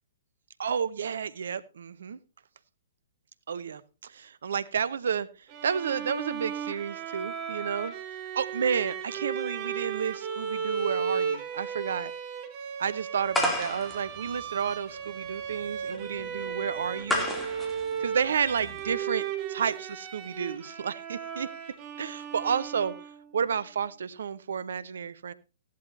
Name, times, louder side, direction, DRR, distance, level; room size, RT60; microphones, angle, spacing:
voice 1, 0.6-2.2 3.5-5.3 5.6-7.9 8.3-12.1 12.8-17.3 18.0-19.2 19.5-21.5 22.0-22.9 23.3-25.3, right 7 dB, 65° right, 17 dB, 0.9 m, -31 dB
Bowed string instrument, 5.5-23.3, right 7 dB, 35° right, 1.7 m, -35 dB
sound 1, 13.3-18.9, left 1 dB, 5° left, 2.7 m, -33 dB
15.5 x 11.5 x 2.7 m, 0.30 s
figure-of-eight pair, 120°, 0 cm